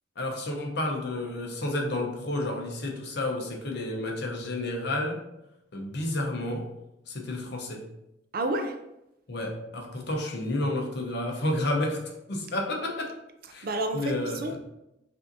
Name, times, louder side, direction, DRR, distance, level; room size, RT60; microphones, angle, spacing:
voice 1, 0.2-5.2 5.7-6.7 7.1-7.8 9.3-13.1 13.5-13.7 13.9-14.6, left 1 dB, 60° left, 1 dB, 0.8 m, -31 dB
voice 2, 8.3-8.7 13.6-14.6, right 2 dB, 50° right, 6 dB, 0.4 m, -30 dB
5.4 x 2.6 x 2.6 m, 0.87 s
head